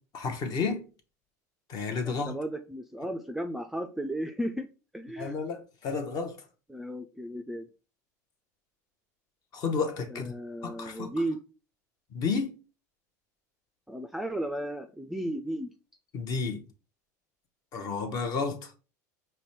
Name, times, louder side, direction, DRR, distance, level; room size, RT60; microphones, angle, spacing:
voice 1, 0.1-0.8 1.7-2.3 5.2-6.4 9.5-10.3 10.6-11.1 12.1-12.6 16.1-16.6 17.7-18.7, left 5 dB, 45° left, 0.8 m, -31 dB
voice 2, 2.0-4.7 4.9-5.4 6.7-7.7 10.1-11.4 13.9-15.7, right 1 dB, 5° right, 0.4 m, -34 dB
5.2 x 2.2 x 3.0 m
hypercardioid pair, 90°, 9 cm